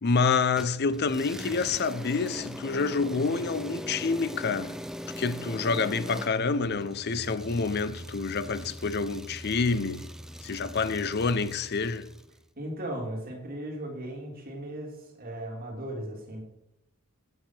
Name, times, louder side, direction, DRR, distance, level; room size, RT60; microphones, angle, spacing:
voice 1, 0.0-4.8 5.2-10.0 10.4-12.1, left 4 dB, 50° left, 0.5 m, -27 dB
sound 1, 0.6-12.3, equal, ahead, 0.3 m, -41 dB
voice 2, 12.6-16.4, right 1 dB, 40° right, 2.6 m, -37 dB
8.9 x 6.5 x 5.9 m
head